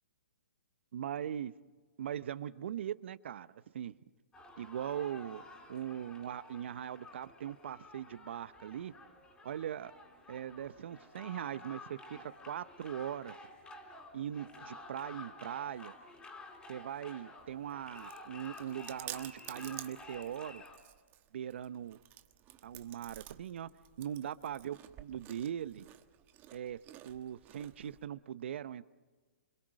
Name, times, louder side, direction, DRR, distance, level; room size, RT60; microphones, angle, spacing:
voice 1, 0.9-1.5 2.0-3.9 4.6-5.4 5.7-8.9 9.4-9.9 10.3-12.2 12.5-13.3 14.1-15.9 16.7-20.6 21.3-22.0 22.6-23.7 24.0-25.9 26.5-26.8 27.0-28.8, right 10 dB, 60° right, 16 dB, 0.9 m, -40 dB
sound 1, 4.3-20.8, left 2 dB, 10° left, 3.8 m, -52 dB
Chewing mastication, 17.4-28.1, right 13 dB, 30° right, 1.2 m, -52 dB
27.0 x 22.0 x 6.4 m, 1.4 s
hypercardioid pair, 130°, 7 cm